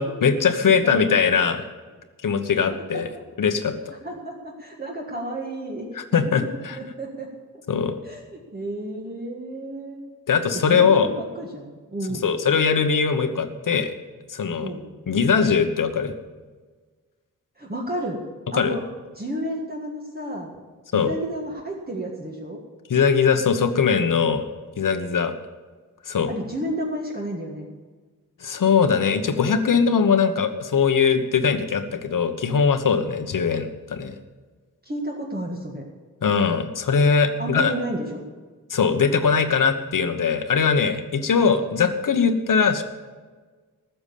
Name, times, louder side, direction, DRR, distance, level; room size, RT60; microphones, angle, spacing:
voice 1, 0.0-1.6 2.2-3.1 3.4-3.7 6.0-6.8 7.7-8.0 10.3-11.1 12.1-13.9 14.3-14.7 15.1-16.1 18.5-18.8 20.9-21.1 22.9-24.5 24.8-25.3 26.1-26.3 28.4-34.2 36.2-37.7 38.7-42.8, left 6 dB, 70° left, 9 dB, 1.2 m, -21 dB
voice 2, 0.8-1.2 2.7-3.0 4.0-5.9 6.7-7.3 8.0-10.0 10.5-12.5 14.6-14.9 17.6-18.2 18.5-18.8 19.1-20.6 20.9-22.6 26.3-27.7 34.8-35.8 37.4-38.2, right 1 dB, 30° right, -2 dB, 1.7 m, -31 dB
14.5 x 7.0 x 8.5 m, 1.4 s
wide cardioid pair, 130°, 33 cm